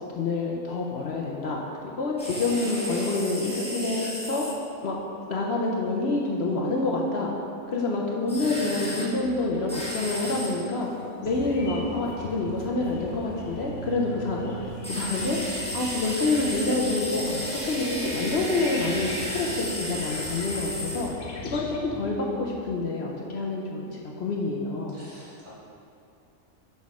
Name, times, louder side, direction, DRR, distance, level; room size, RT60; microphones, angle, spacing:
voice 1, 0.1-4.4 4.8-5.0 5.3-7.3 7.7-10.9 11.2-14.5 14.9-21.1 21.4-25.0, left 3 dB, 60° left, -1 dB, 0.8 m, -27 dB
sound 1, 2.2-4.5 8.3-9.1 9.7-10.5 14.8-21.1, equal, 5° left, 1.0 m, -33 dB
sound 2, 8.3-22.7, right 2 dB, 50° right, 0.6 m, -44 dB
sound 3, 11.2-21.8, left 1 dB, 85° left, 1.3 m, -42 dB
voice 2, 15.2-15.8 24.9-25.5, left 1 dB, 65° right, -9 dB, 2.4 m, -47 dB
6.2 x 5.4 x 4.8 m, 2.6 s
omnidirectional pair, 1.5 m